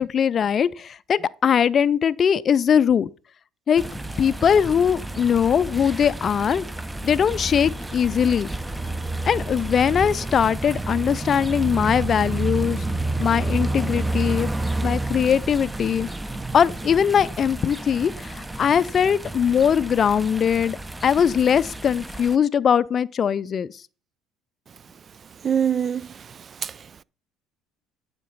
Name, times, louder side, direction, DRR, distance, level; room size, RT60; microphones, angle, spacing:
voice 1, 0.0-3.1 3.7-3.9 4.2-6.7 7.0-8.5 9.3-12.8 13.2-14.5 14.8-16.1 16.5-20.8 21.0-23.7, left 8 dB, 45° left, 0.4 m, -21 dB
sound 1, 3.8-22.4, right 2 dB, 10° right, 0.8 m, -30 dB
voice 2, 25.3-27.0, right 8 dB, 40° right, 0.4 m, -26 dB
11.0 x 5.2 x 4.1 m
hypercardioid pair, 65°, 0 cm